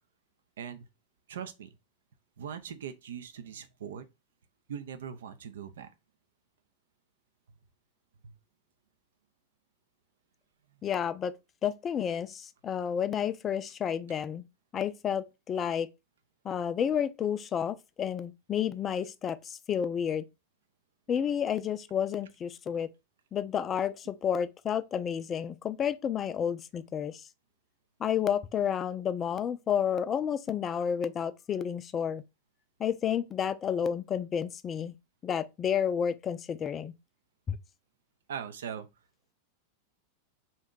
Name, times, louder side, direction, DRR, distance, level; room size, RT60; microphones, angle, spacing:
voice 1, 0.6-0.9 1.3-1.7 2.4-4.0 4.7-5.9 8.2-8.4 38.3-38.9, right 8 dB, 80° right, 0.4 m, -40 dB
voice 2, 10.8-11.3 11.6-14.4 14.7-15.9 16.4-20.2 21.1-22.9 23.3-27.2 28.0-32.2 32.8-34.9 35.2-36.9 37.5-37.6, left 8 dB, 30° left, 0.3 m, -31 dB
2.6 x 2.2 x 3.7 m
hypercardioid pair, 105°, 0 cm